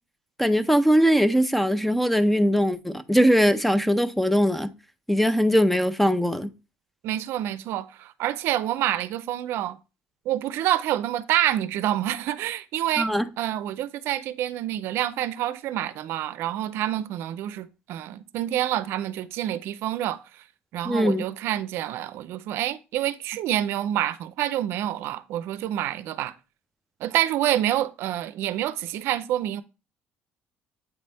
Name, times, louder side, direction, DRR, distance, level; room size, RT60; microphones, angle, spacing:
voice 1, 0.4-4.7 5.1-6.5 13.0-13.3 20.8-21.3, equal, 5° left, 0.5 m, -21 dB
voice 2, 7.0-9.8 10.3-13.1 13.4-20.2 20.7-26.3 27.0-29.6, right 12 dB, 70° right, 0.5 m, -27 dB
8.1 x 4.1 x 3.4 m
cardioid pair, 105°, 4 cm